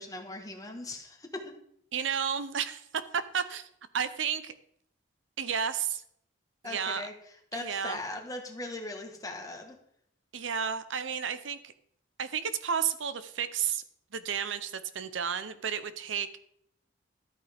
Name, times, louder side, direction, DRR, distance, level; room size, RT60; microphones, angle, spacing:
voice 1, 0.0-1.5 6.6-7.1 7.5-9.8, left 2 dB, 20° left, 3 dB, 1.4 m, -39 dB
voice 2, 1.9-3.7 3.9-4.5 5.4-6.0 6.6-7.1 7.5-8.0 10.3-11.7 12.2-13.8 14.1-16.3, right 7 dB, 80° right, 12 dB, 0.7 m, -32 dB
13.0 x 8.8 x 3.5 m, 0.70 s
head